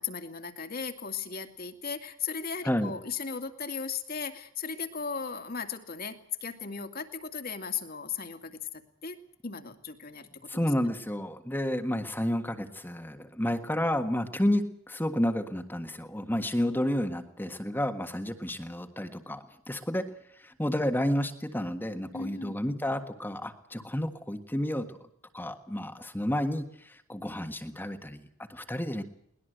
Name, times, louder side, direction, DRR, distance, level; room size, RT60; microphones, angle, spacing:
voice 1, 0.0-9.2 9.4-10.6 22.1-22.6, left 6 dB, 45° left, 6 dB, 2.4 m, -37 dB
voice 2, 10.5-20.0 20.4-25.0 25.3-29.0, left 1 dB, 10° left, 6 dB, 1.6 m, -31 dB
21.5 x 20.0 x 8.0 m, 0.72 s
head